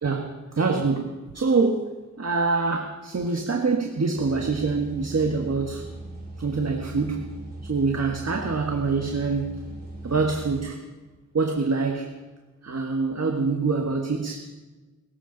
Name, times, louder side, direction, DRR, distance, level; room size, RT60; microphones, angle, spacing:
voice 1, 0.0-5.9 6.4-9.7 10.0-10.8 11.3-12.2 12.6-14.4, right 4 dB, 55° right, 2 dB, 1.5 m, -25 dB
sound 1, 4.2-10.6, right 1 dB, 30° right, 4.5 m, -39 dB
22.5 x 14.5 x 4.0 m, 1.3 s
cardioid pair, 60°, 30 cm